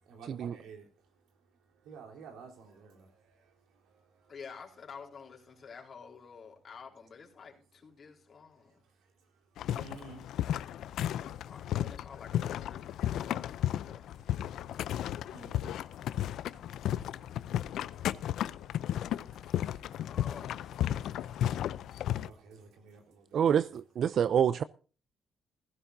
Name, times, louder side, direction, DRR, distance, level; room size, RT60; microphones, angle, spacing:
voice 1, 0.0-4.4 8.5-11.5 12.1-12.2 12.8-20.3 20.5-23.7, right 5 dB, 85° right, 3.9 m, -56 dB
voice 2, 4.3-8.8 11.2-14.1 20.0-20.9 21.1-21.4, left 6 dB, 50° left, 4.0 m, -50 dB
sound 1, 9.6-22.3, left 11 dB, 80° left, 0.5 m, -34 dB
voice 3, 23.3-24.6, right 8 dB, 60° right, 0.5 m, -27 dB
15.5 x 15.5 x 2.7 m
cardioid pair, 90°, 0 cm